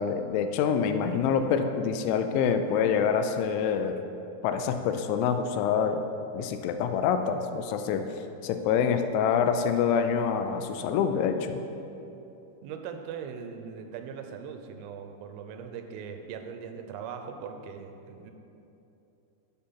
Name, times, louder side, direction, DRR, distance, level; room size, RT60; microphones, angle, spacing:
voice 1, 0.0-4.0 4.4-6.0 6.3-8.1 8.4-11.6, left 7 dB, 85° left, 7 dB, 2.9 m, -26 dB
voice 2, 12.6-18.3, right 6 dB, 85° right, 6 dB, 3.1 m, -40 dB
11.0 x 4.1 x 5.7 m, 2.8 s
omnidirectional pair, 5.5 m